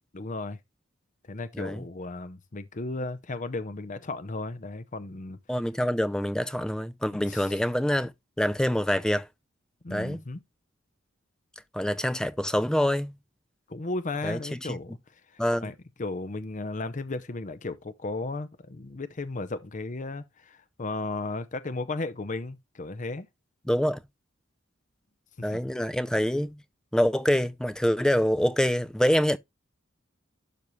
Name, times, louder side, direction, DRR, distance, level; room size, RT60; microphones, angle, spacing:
voice 1, 0.1-0.6 1.3-5.4 7.1-7.6 9.8-10.4 13.7-23.3 25.4-25.6, left 2 dB, 40° left, 0.7 m, -35 dB
voice 2, 5.5-8.1 8.4-9.3 9.9-10.2 11.7-13.1 14.2-14.8 15.4-15.7 23.7-24.0 25.4-26.6 26.9-29.4, equal, 5° left, 0.4 m, -26 dB
12.0 x 4.1 x 3.1 m
head